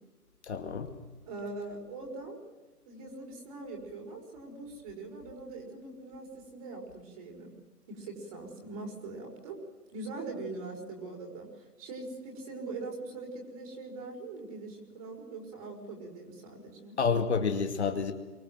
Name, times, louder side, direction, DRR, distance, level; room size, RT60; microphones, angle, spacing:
voice 1, 0.4-0.9 17.0-18.1, left 5 dB, 45° left, 5 dB, 2.3 m, -29 dB
voice 2, 1.3-2.4 2.9-7.5 7.9-9.6 9.9-17.0, right 3 dB, 25° right, 1 dB, 5.4 m, -42 dB
24.5 x 21.0 x 7.7 m, 1.2 s
hypercardioid pair, 165°, 47 cm